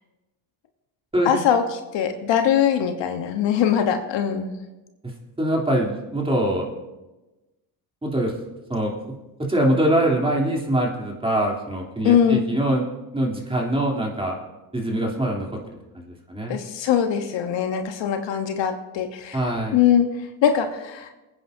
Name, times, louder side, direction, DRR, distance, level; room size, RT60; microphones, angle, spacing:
voice 1, 1.2-1.6 1.9-4.5 12.0-12.5 16.5-19.4 19.7-21.1, left 9 dB, 60° left, 6 dB, 1.2 m, -21 dB
voice 2, 5.4-6.7 8.0-8.3 8.7-8.9 9.4-12.9 13.1-14.4 14.7-16.6 19.3-19.8, right 1 dB, 10° right, -1 dB, 3.1 m, -23 dB
23.0 x 9.7 x 2.7 m, 1.1 s
supercardioid pair, 75°, 49 cm